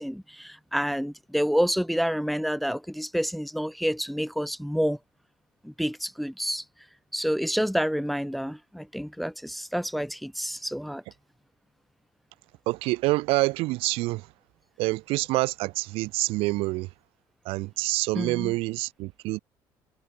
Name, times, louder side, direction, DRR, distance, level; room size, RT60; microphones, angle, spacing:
voice 1, 0.0-5.0 5.6-6.6 7.1-11.0 18.1-18.5, equal, ahead, 0.8 m, -28 dB
voice 2, 12.7-14.3 14.8-16.9 17.4-19.4, right 22 dB, 80° right, 1.0 m, -27 dB
supercardioid pair, 65°, 10 cm